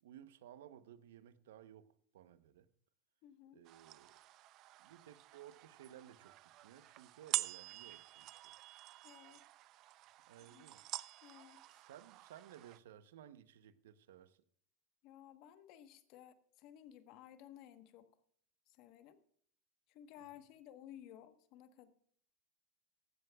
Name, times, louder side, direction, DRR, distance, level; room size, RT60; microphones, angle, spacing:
voice 1, 0.0-2.7 3.5-4.1 4.8-8.5 10.3-10.8 11.8-14.4, right 11 dB, 85° right, 0.8 m, -58 dB
voice 2, 3.2-3.6 9.0-9.4 10.5-10.7 11.2-11.6 15.0-18.1 18.7-19.2 19.9-21.9, left 11 dB, 60° left, 1.2 m, -57 dB
sound 1, 3.6-12.8, right 16 dB, 50° right, 0.5 m, -47 dB
15.5 x 13.0 x 2.3 m
supercardioid pair, 115°, 0 cm